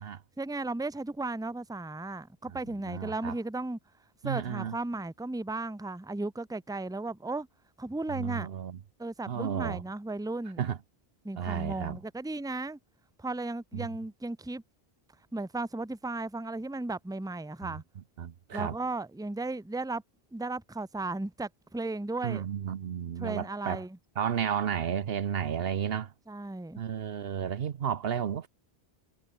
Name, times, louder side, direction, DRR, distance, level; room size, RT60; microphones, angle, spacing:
voice 1, 0.4-3.8 4.2-7.5 7.8-8.5 9.0-10.6 11.2-12.8 13.2-14.6 15.3-17.8 18.5-20.0 20.3-22.4 23.2-24.0 26.3-26.8, right 2 dB, 5° right, 0.9 m, -35 dB
voice 2, 2.9-3.3 4.2-4.8 8.1-8.8 9.3-9.8 10.6-10.8 11.4-12.0 13.7-13.9 17.6-17.8 18.2-18.7 22.2-23.8 24.2-26.1 26.8-28.5, right 8 dB, 65° right, 1.0 m, -32 dB
omnidirectional pair, 1.1 m